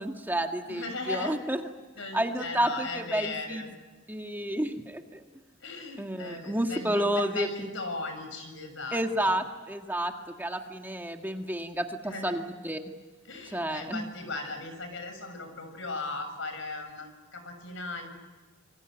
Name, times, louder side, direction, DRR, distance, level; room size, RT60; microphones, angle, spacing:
voice 1, 0.0-1.6 2.1-3.6 4.1-5.2 6.0-7.7 8.9-12.8 13.5-14.0, right 1 dB, 10° right, 4 dB, 1.7 m, -30 dB
voice 2, 0.7-1.4 2.0-3.7 5.6-9.3 12.0-12.4 13.2-18.2, left 3 dB, 70° left, 7 dB, 6.8 m, -37 dB
27.5 x 23.5 x 9.1 m, 1.3 s
head